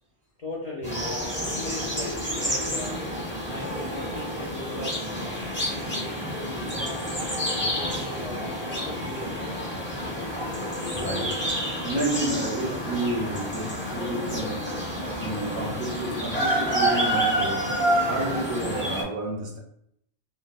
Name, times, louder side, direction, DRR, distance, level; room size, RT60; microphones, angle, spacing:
voice 1, 0.4-3.0 3.4-7.0 7.5-9.5, left 1 dB, 55° left, 0.5 m, -39 dB
sound 1, 0.8-19.0, equal, 15° left, 0.6 m, -29 dB
voice 2, 9.7-10.2 10.9-11.4 11.8-14.8 15.2-19.6, right 1 dB, 60° right, 0.6 m, -31 dB
3.3 x 2.1 x 2.2 m
omnidirectional pair, 1.1 m